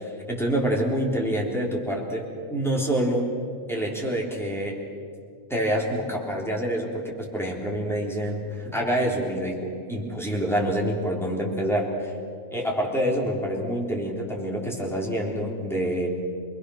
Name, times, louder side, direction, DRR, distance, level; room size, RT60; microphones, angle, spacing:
voice 1, 0.0-3.3 3.7-4.8 5.5-12.1 12.5-16.1, equal, ahead, -2 dB, 3.6 m, -27 dB
28.5 x 21.0 x 6.4 m, 2.2 s
omnidirectional pair, 1.4 m